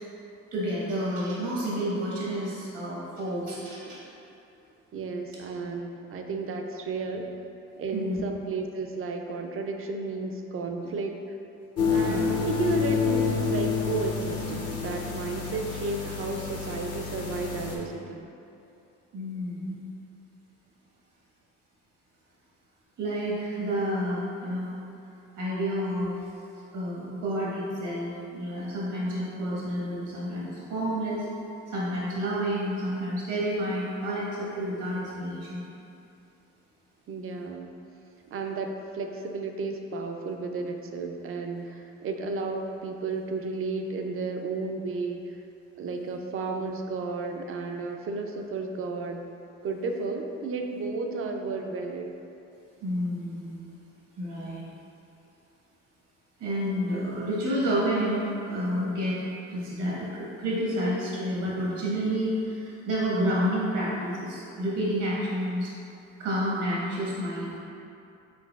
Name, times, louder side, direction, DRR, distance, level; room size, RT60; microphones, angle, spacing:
voice 1, 0.5-4.0 7.9-8.2 11.9-12.3 19.1-19.8 23.0-24.7 25.4-26.1 26.7-31.3 31.7-35.6 52.8-53.6 54.2-54.6 56.4-59.2 59.5-65.7 66.2-67.6, equal, 85° right, -7 dB, 1.3 m, -29 dB
voice 2, 4.9-7.3 7.8-11.4 11.8-18.3 37.1-37.8 38.3-45.4 45.8-49.2 49.6-52.1, right 3 dB, 45° right, 3 dB, 0.4 m, -33 dB
sound 1, 11.8-17.8, left 5 dB, 55° left, 0.7 m, -28 dB
4.6 x 3.7 x 2.3 m, 2.7 s
cardioid pair, 90°, 30 cm